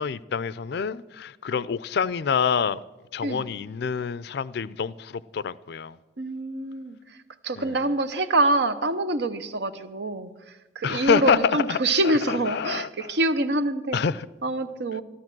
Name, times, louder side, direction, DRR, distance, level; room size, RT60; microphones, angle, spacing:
voice 1, 0.0-2.8 3.1-6.0 7.6-7.7 10.8-13.1 13.9-14.3, left 6 dB, 60° left, 0.4 m, -27 dB
voice 2, 6.2-7.2 7.4-14.0 14.4-15.0, right 2 dB, 65° right, 0.8 m, -26 dB
13.0 x 13.0 x 6.0 m
head